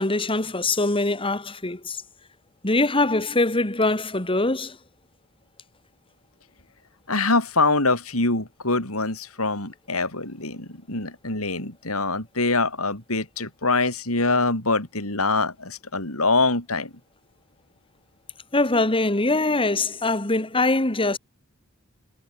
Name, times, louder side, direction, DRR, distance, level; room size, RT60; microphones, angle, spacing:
voice 1, 0.0-2.0 2.6-4.8 18.5-21.2, left 2 dB, 25° left, 2.5 m, -23 dB
voice 2, 7.1-16.9, left 3 dB, 75° left, 7.7 m, -24 dB
head